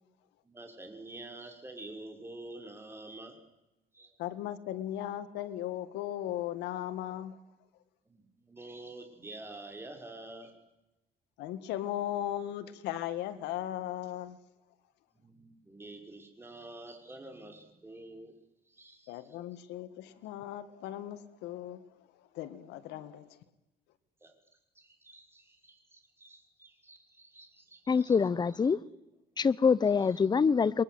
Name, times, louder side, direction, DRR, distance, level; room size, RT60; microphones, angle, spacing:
voice 1, 0.4-3.4 3.9-4.1 8.1-10.5 15.1-18.4 18.7-19.3 22.9-23.0 24.2-24.3 24.7-28.2 28.6-28.7 30.1-30.2, right 2 dB, 15° right, 6.0 m, -48 dB
voice 2, 4.2-7.4 11.4-14.4 19.1-22.1 22.3-23.4, left 12 dB, 90° left, 2.0 m, -37 dB
voice 3, 27.9-28.8 29.4-30.8, left 5 dB, 25° left, 0.9 m, -25 dB
29.5 x 23.0 x 8.1 m
cardioid pair, 110°, 17 cm